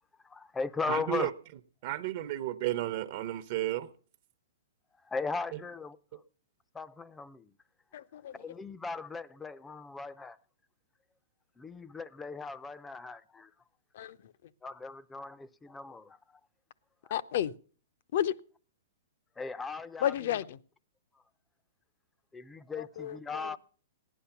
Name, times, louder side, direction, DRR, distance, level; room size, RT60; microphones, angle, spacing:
voice 1, 0.3-1.3 5.1-6.0 6.7-7.5 8.4-10.4 11.6-13.5 14.6-16.2 19.4-20.1 22.3-23.6, left 4 dB, 10° left, 0.5 m, -38 dB
voice 2, 0.9-1.3 1.8-3.9, right 14 dB, 50° right, 0.8 m, -32 dB
voice 3, 7.9-8.3 13.9-14.2 17.1-17.5 18.1-18.3 20.0-20.6 22.8-23.6, left 11 dB, 55° left, 0.7 m, -32 dB
15.5 x 10.0 x 5.8 m
hypercardioid pair, 145°, 0 cm